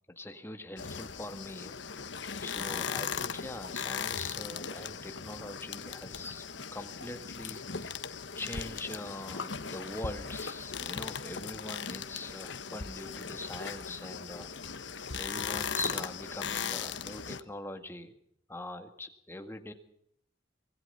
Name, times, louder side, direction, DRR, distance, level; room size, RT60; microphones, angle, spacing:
voice 1, 0.1-6.5 6.7-8.0 8.4-14.9 15.2-18.2 18.5-19.7, left 1 dB, 15° left, 6 dB, 2.0 m, -43 dB
sound 1, 0.8-17.4, left 6 dB, 75° left, 1.2 m, -38 dB
25.0 x 20.0 x 5.7 m, 0.71 s
head